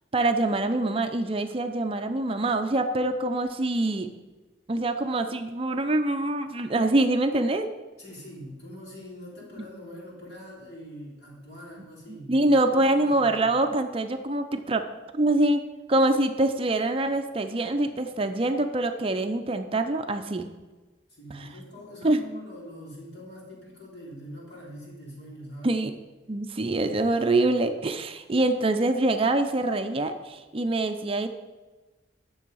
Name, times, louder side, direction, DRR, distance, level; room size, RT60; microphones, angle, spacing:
voice 1, 0.1-4.1 4.7-7.7 12.1-14.8 15.1-15.6 15.9-20.5 22.0-22.2 25.6-25.9 26.3-31.3, right 2 dB, 30° right, 7 dB, 0.5 m, -25 dB
voice 2, 8.0-13.5 21.1-25.8, equal, 60° left, -4 dB, 3.6 m, -43 dB
10.0 x 7.0 x 5.4 m, 1.2 s
head